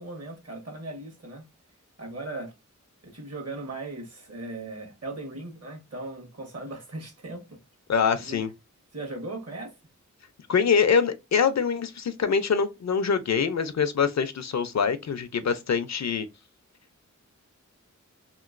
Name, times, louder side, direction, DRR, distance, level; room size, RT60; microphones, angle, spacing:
voice 1, 0.0-1.4 2.0-2.5 3.0-7.6 8.1-8.4 8.9-9.8, right 2 dB, 55° right, 1.3 m, -38 dB
voice 2, 7.9-8.5 10.5-16.3, left 6 dB, 60° left, 0.4 m, -24 dB
2.9 x 2.8 x 2.4 m
wide cardioid pair, 75°, 31 cm